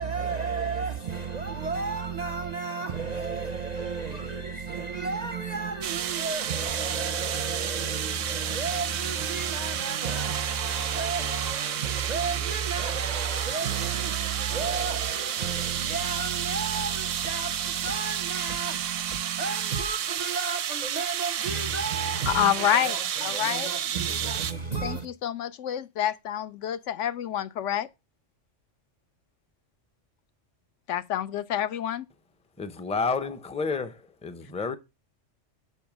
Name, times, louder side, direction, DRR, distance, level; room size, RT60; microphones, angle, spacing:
voice 1, 0.0-25.1, right 5 dB, 50° right, 0.5 m, -32 dB
sound 1, 5.8-24.5, right 10 dB, 85° right, 1.0 m, -31 dB
voice 2, 22.3-23.7 24.8-27.9 30.9-32.0, left 10 dB, 75° left, 0.9 m, -28 dB
voice 3, 32.6-34.8, left 4 dB, 10° left, 0.4 m, -30 dB
7.0 x 5.5 x 5.9 m
omnidirectional pair, 1.3 m